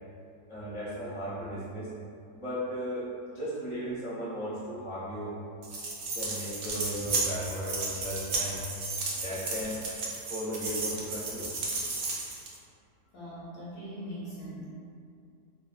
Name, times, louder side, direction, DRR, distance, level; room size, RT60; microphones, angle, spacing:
voice 1, 0.5-1.9 2.3-5.3 6.1-8.6 9.2-9.8 10.3-11.5, equal, 25° left, -10 dB, 0.7 m, -36 dB
sound 1, 5.6-12.6, right 3 dB, 70° right, 0.7 m, -34 dB
voice 2, 13.1-14.6, equal, 65° left, -8 dB, 1.0 m, -41 dB
3.3 x 2.7 x 2.4 m, 2.5 s
omnidirectional pair, 1.8 m